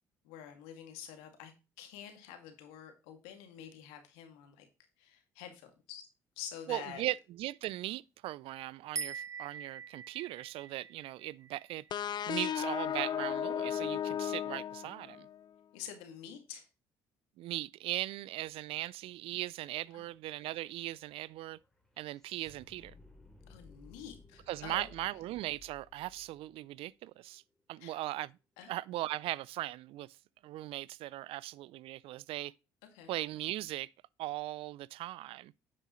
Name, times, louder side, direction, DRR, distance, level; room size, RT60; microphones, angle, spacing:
voice 1, 0.2-1.5 1.8-4.7 5.0-6.1 6.4-7.0 15.7-16.7 19.9-20.1 23.5-24.9 27.8-28.0 28.6-28.7 32.9-33.1, left 9 dB, 80° left, 2.2 m, -47 dB
voice 2, 6.7-11.8 12.3-15.3 17.4-21.6 22.0-22.9 24.5-27.4 27.7-28.3 28.7-30.1 30.4-32.5 33.1-33.9 34.2-35.5, right 16 dB, 65° right, 0.4 m, -39 dB
sound 1, 9.0-12.3, right 6 dB, 35° right, 1.0 m, -43 dB
sound 2, 11.9-15.4, left 9 dB, 45° left, 0.5 m, -35 dB
sound 3, 19.0-19.1 19.4-27.6, left 3 dB, 5° left, 2.9 m, -60 dB
9.9 x 7.5 x 3.1 m
hypercardioid pair, 60°, 10 cm